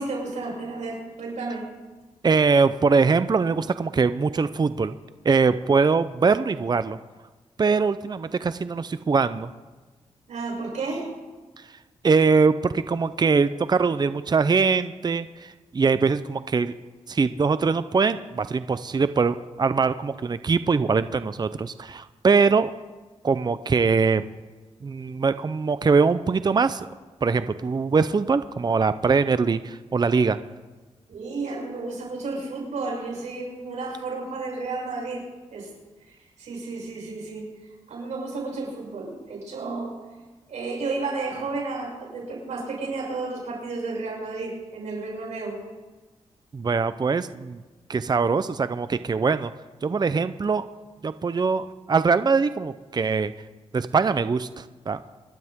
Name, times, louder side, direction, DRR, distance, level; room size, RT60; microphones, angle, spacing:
voice 1, 0.0-1.7 10.3-11.1 31.1-35.2 35.5-35.7 36.0-40.0 40.5-45.6, right 3 dB, 80° right, -3 dB, 6.7 m, -32 dB
voice 2, 2.2-5.0 5.2-7.0 7.6-9.5 12.0-16.7 17.1-22.7 23.2-24.3 24.8-26.9 27.2-30.4 46.5-47.6 47.9-49.5 49.8-50.7 51.0-53.3 53.7-55.0, right 4 dB, 35° right, 13 dB, 0.6 m, -22 dB
25.5 x 12.5 x 3.7 m, 1.2 s
cardioid pair, 70°, 12 cm